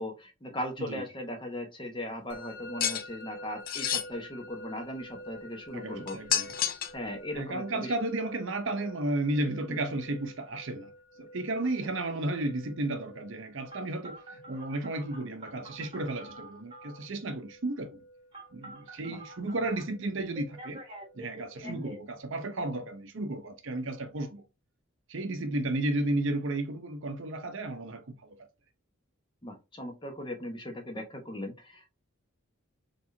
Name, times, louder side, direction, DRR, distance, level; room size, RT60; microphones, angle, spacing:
voice 1, 0.0-6.6 6.9-7.9 9.7-9.9 19.0-19.2 21.6-21.9 29.4-31.9, left 1 dB, 25° left, 1.0 m, -38 dB
Musical instrument, 2.3-21.2, equal, 60° left, 1.0 m, -50 dB
sound 1, 2.8-3.0 3.7-4.1 6.1-7.0, left 10 dB, 45° left, 0.4 m, -29 dB
voice 2, 5.7-6.5 7.3-10.9 11.2-18.0 18.5-20.8 21.1-24.4 25.1-28.4, right 2 dB, 65° right, 0.7 m, -33 dB
Telephone, 13.7-17.0 18.3-19.8 20.3-22.0, right 1 dB, 25° right, 1.2 m, -47 dB
4.3 x 3.3 x 2.6 m
head